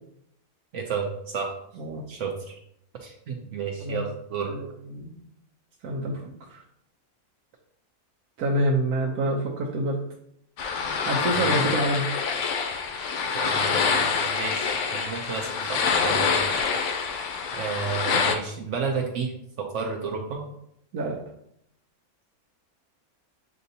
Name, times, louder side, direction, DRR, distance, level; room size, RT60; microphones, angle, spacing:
voice 1, 0.7-1.5 2.1-2.6 3.0-4.5 11.3-11.5 13.3-16.4 17.5-19.3 19.6-20.4, right 5 dB, 65° right, 2 dB, 0.8 m, -32 dB
voice 2, 4.5-5.1 5.8-6.6 8.4-10.0 11.1-12.1 20.9-21.2, right 1 dB, 85° right, -2 dB, 1.2 m, -27 dB
sound 1, 10.6-18.3, left 5 dB, 65° left, 0.8 m, -26 dB
7.4 x 2.6 x 2.7 m, 0.74 s
omnidirectional pair, 1.6 m